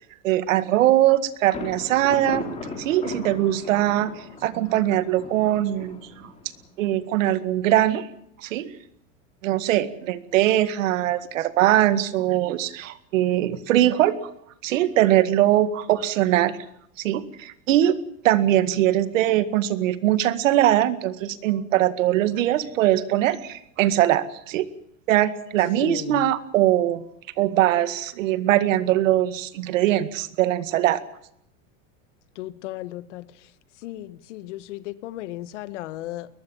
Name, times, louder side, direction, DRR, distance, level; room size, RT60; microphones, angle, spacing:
voice 1, 0.2-2.5 2.8-6.3 6.8-8.1 8.4-8.8 9.4-14.2 14.6-16.6 17.0-17.9 18.2-24.7 25.1-27.0 27.4-31.0, right 13 dB, 75° right, 13 dB, 2.0 m, -21 dB
Thunder, 1.5-7.2, left 3 dB, 15° left, 4.1 m, -37 dB
voice 2, 25.7-26.3 32.3-33.3 33.8-36.3, left 15 dB, 65° left, 14 dB, 1.6 m, -35 dB
22.0 x 20.5 x 7.3 m, 0.72 s
supercardioid pair, 170°, 39 cm